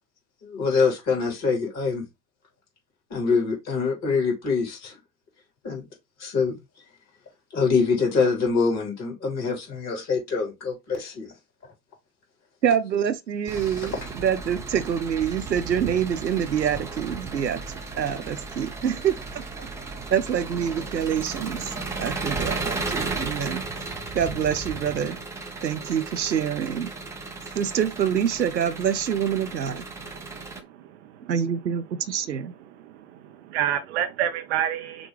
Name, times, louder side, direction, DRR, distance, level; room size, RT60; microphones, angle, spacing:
voice 1, 0.4-2.1 3.1-5.0 5.6-5.8 6.2-6.5 7.5-11.3, left 5 dB, 30° left, 2.9 m, -24 dB
voice 2, 12.6-17.6 18.0-19.7 20.1-23.6 24.1-25.2 25.6-26.9 27.5-29.8 31.3-32.5, right 8 dB, 90° right, 0.7 m, -26 dB
Engine, 13.5-30.6, right 3 dB, 5° right, 0.6 m, -35 dB
voice 3, 30.2-30.5 30.8-31.3 32.8-35.1, right 10 dB, 45° right, 0.6 m, -29 dB
6.1 x 2.3 x 3.2 m
figure-of-eight pair, 95°, 50 cm